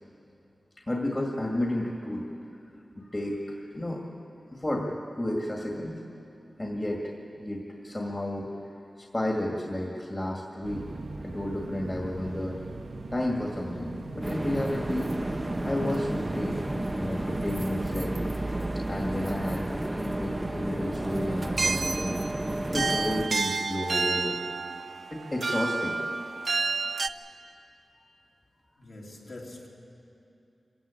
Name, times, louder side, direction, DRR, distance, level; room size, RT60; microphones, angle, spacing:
voice 1, 0.8-2.3 3.0-4.1 4.5-6.0 6.6-7.1 7.4-8.5 9.0-10.9 11.2-12.6 13.1-15.2 15.6-16.6 16.9-18.2 18.9-22.2 22.7-24.4 25.1-26.0, left 1 dB, 25° left, 0 dB, 2.1 m, -32 dB
sound 1, 10.6-18.1, right 2 dB, 80° right, 1.1 m, -40 dB
sound 2, 14.2-23.3, right 1 dB, 20° right, 0.7 m, -32 dB
sound 3, 21.4-27.1, right 4 dB, 65° right, 0.6 m, -30 dB
voice 2, 28.8-29.7, left 2 dB, 55° left, -3 dB, 3.3 m, -44 dB
25.0 x 15.5 x 8.6 m, 2.8 s
wide cardioid pair, 95°, 0 cm